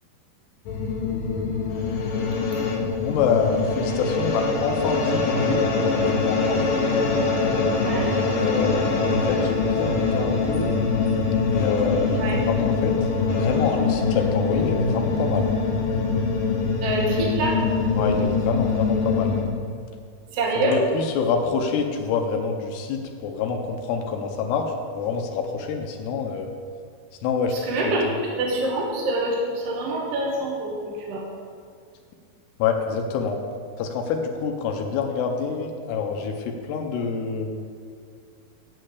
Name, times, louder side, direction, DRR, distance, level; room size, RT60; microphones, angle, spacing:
sound 1, 0.7-19.4, left 4 dB, 65° left, 2.8 m, -23 dB
voice 1, 3.0-6.7 8.4-10.9 11.5-13.0 13.3-15.5 18.0-19.4 20.6-24.7 25.0-26.5 27.2-27.6 27.8-28.2 32.6-33.4 33.8-37.5, left 5 dB, 90° left, 3 dB, 2.9 m, -26 dB
voice 2, 7.8-8.1 12.2-12.4 16.8-17.6 20.3-20.8 27.5-28.1 28.4-31.2, right 2 dB, 60° right, -2 dB, 1.6 m, -26 dB
8.6 x 6.6 x 8.2 m, 2.3 s
omnidirectional pair, 4.6 m